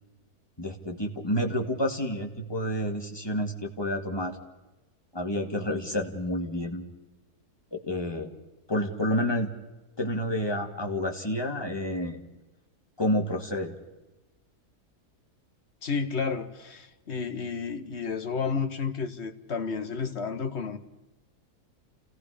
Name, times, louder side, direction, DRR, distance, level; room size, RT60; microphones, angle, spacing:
voice 1, 0.6-4.4 5.1-6.8 7.7-8.3 8.7-9.5 10.0-12.2 13.0-13.7, left 1 dB, 15° left, 2.3 m, -29 dB
voice 2, 15.8-20.8, left 5 dB, 45° left, 1.5 m, -31 dB
29.0 x 17.5 x 5.1 m
omnidirectional pair, 1.7 m